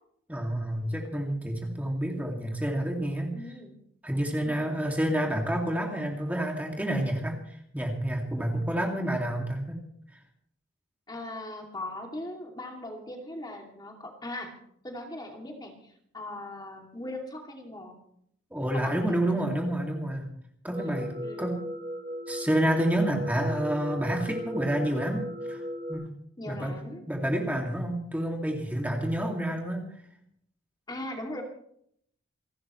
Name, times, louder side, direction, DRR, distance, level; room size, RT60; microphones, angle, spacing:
voice 1, 0.3-3.4 4.0-9.8 18.5-20.3 20.6-21.1 21.4-21.6 22.3-25.6 25.9-26.1 26.5-26.8 27.1-29.9, right 1 dB, 10° right, 1 dB, 2.4 m, -29 dB
voice 2, 3.3-3.8 4.3-4.7 11.1-14.5 14.8-18.0 18.7-19.6 20.7-21.6 26.4-27.0 30.9-31.4, left 1 dB, 20° left, 1 dB, 2.7 m, -40 dB
sound 1, 20.7-25.9, equal, 50° right, 4.5 m, -37 dB
28.5 x 12.5 x 3.2 m, 0.68 s
head